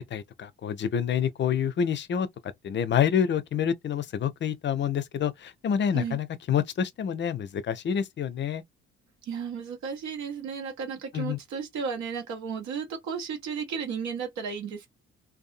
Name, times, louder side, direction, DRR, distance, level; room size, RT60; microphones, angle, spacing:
voice 1, 0.1-2.3 2.6-8.6 11.1-11.4, left 8 dB, 35° left, 0.5 m, -27 dB
voice 2, 9.2-14.9, right 6 dB, 60° right, 0.9 m, -34 dB
2.6 x 2.2 x 2.5 m
figure-of-eight pair, 45°, 33 cm